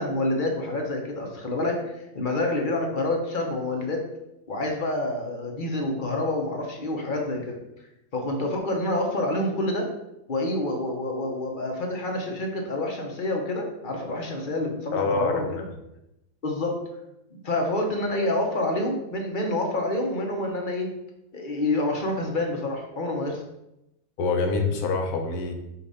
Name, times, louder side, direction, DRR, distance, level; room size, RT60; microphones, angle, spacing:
voice 1, 0.0-4.0 4.5-7.6 8.1-9.9 10.3-15.6 16.4-16.8 17.4-20.9 21.3-23.4, left 2 dB, 40° left, 1 dB, 0.9 m, -27 dB
voice 2, 14.9-15.4 24.2-25.5, left 4 dB, 75° left, 3 dB, 1.3 m, -25 dB
6.6 x 2.6 x 5.5 m, 0.88 s
omnidirectional pair, 1.6 m